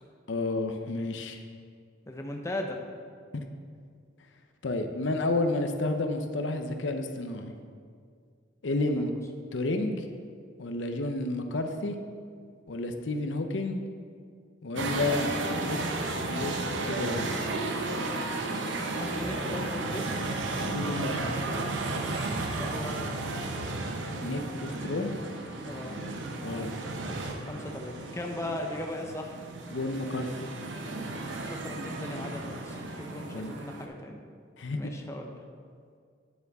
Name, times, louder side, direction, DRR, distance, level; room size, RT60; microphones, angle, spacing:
voice 1, 0.3-1.4 3.3-3.4 4.6-7.5 8.6-9.1 9.5-10.1 10.6-12.0 12.7-13.8 14.6-15.3 15.6-17.3 20.7-21.4 24.2-25.2 26.4-26.7 29.7-30.5 33.3-33.5 34.6-34.9, left 2 dB, 85° left, 6 dB, 0.7 m, -31 dB
voice 2, 2.1-2.8 8.8-9.2 19.0-20.1 22.6-23.3 25.7-25.9 27.5-29.4 31.4-34.2 34.7-35.3, left 1 dB, 15° left, 2 dB, 0.6 m, -38 dB
sound 1, 14.8-33.9, right 2 dB, 80° right, 0.8 m, -33 dB
9.6 x 7.9 x 3.5 m, 2.1 s
head